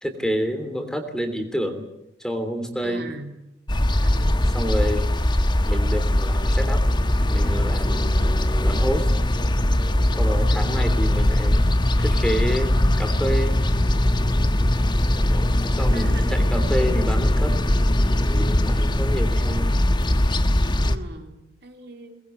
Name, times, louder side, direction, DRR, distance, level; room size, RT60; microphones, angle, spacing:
voice 1, 0.0-1.9 2.2-3.1 4.5-5.1 5.6-6.8 7.2-8.1 8.6-9.1 10.2-11.6 12.0-13.6 15.3-17.6 18.3-19.7, equal, 5° left, 7 dB, 3.1 m, -28 dB
voice 2, 2.8-3.4 4.0-4.5 8.1-8.5 10.4-11.2 15.9-16.6 20.8-22.2, right 2 dB, 60° right, 4 dB, 3.5 m, -39 dB
sound 1, 3.7-21.0, left 1 dB, 25° left, 1.1 m, -20 dB
22.5 x 20.5 x 9.2 m, 0.85 s
head